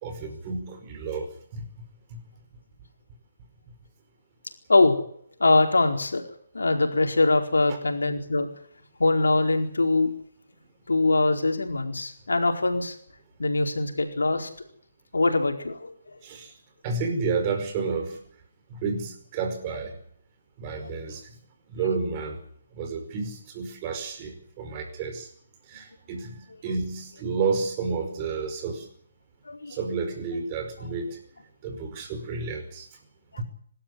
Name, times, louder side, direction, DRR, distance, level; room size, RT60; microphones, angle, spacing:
voice 1, 0.0-1.8 2.1-2.2 16.2-16.6 16.8-18.2 18.7-20.0 20.6-21.3 21.7-22.4 22.7-25.3 25.7-28.9 29.7-31.2 31.6-32.9 33.4-33.5, right 4 dB, 25° right, 5 dB, 5.2 m, -31 dB
voice 2, 5.4-6.2 6.5-8.5 9.0-10.1 10.9-13.0 13.4-14.5 15.1-15.9 29.5-29.8 33.3-33.4, left 3 dB, 70° left, 4 dB, 4.5 m, -22 dB
25.0 x 12.5 x 9.8 m, 0.64 s
figure-of-eight pair, 140°, 0 cm